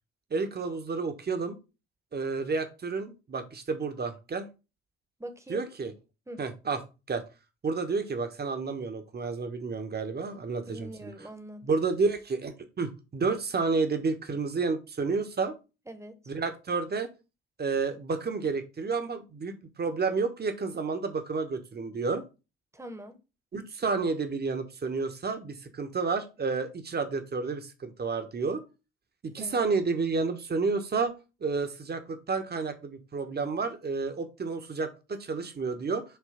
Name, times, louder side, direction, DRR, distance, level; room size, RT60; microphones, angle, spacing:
voice 1, 0.3-1.6 2.1-4.5 5.5-5.9 6.4-6.8 7.1-7.2 7.6-11.1 11.6-15.5 16.3-17.1 17.6-22.2 23.5-28.6 29.2-31.1 31.4-36.0, right 4 dB, 30° right, 1.4 m, -30 dB
voice 2, 5.2-5.6 6.3-6.4 10.7-11.7 15.9-16.2 22.7-23.2 29.3-29.6, right 1 dB, 10° right, 1.4 m, -43 dB
7.0 x 3.7 x 5.1 m
figure-of-eight pair, 50°, 33 cm